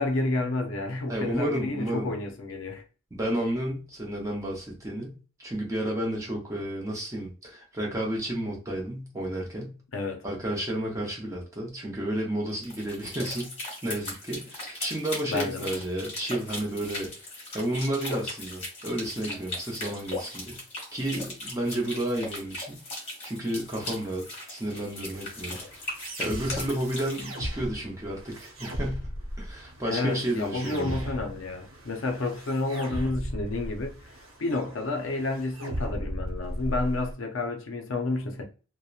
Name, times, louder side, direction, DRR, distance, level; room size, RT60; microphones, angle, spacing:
voice 1, 0.0-2.8 9.9-10.2 15.3-15.8 29.8-34.1 34.4-38.4, left 2 dB, 65° left, 0.5 m, -30 dB
voice 2, 1.1-2.1 3.1-9.8 10.2-13.5 13.8-17.1 17.5-20.6 20.9-22.8 23.2-25.6 26.2-29.1 29.4-31.0, right 1 dB, 15° right, 0.6 m, -31 dB
sound 1, 12.5-27.3, left 2 dB, 30° left, 1.0 m, -38 dB
sound 2, 25.1-37.1, equal, 80° right, 0.7 m, -37 dB
2.8 x 2.0 x 2.3 m
head